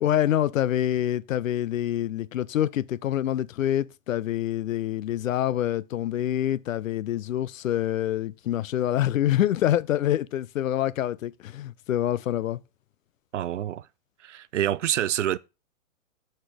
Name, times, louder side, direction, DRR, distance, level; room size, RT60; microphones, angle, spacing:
voice 1, 0.0-12.6, left 12 dB, 70° left, 0.6 m, -26 dB
voice 2, 13.3-13.9 14.2-15.4, right 11 dB, 65° right, 0.5 m, -27 dB
8.0 x 4.4 x 4.8 m
hypercardioid pair, 175°, 41 cm